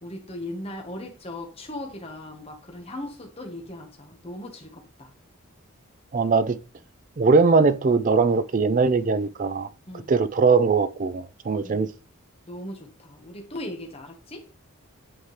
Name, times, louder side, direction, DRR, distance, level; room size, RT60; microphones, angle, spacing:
voice 1, 0.0-5.1 9.9-10.1 11.6-11.9 12.5-14.4, left 1 dB, 30° left, 1.2 m, -38 dB
voice 2, 6.1-6.6 7.2-9.7 10.1-11.9, right 4 dB, 35° right, 0.4 m, -20 dB
8.8 x 3.6 x 3.2 m
head